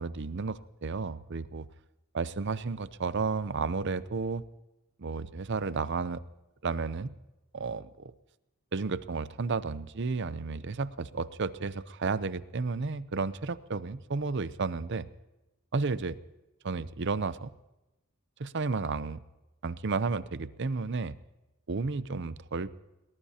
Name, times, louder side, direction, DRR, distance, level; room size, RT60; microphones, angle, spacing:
voice 1, 0.0-1.7 2.1-4.4 5.0-6.2 6.6-7.1 7.5-8.1 8.7-15.1 15.7-16.2 16.6-17.5 18.4-19.2 19.6-21.2 21.7-22.7, right 4 dB, 55° right, 15 dB, 0.6 m, -32 dB
22.5 x 19.5 x 2.9 m, 1.0 s
head